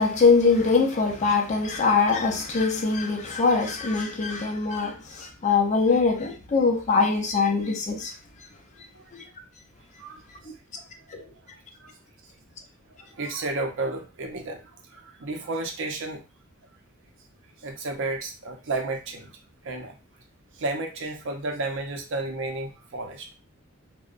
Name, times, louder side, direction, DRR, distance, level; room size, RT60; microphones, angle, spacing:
voice 1, 0.0-8.1 9.1-9.2 11.1-11.2, left 4 dB, 35° left, 0.4 m, -22 dB
voice 2, 10.0-10.8 11.2-11.3 11.8-12.0 12.9-16.2 17.6-19.4 19.6-20.0 20.5-23.3, right 2 dB, 65° right, 0.6 m, -32 dB
2.6 x 2.1 x 2.4 m
head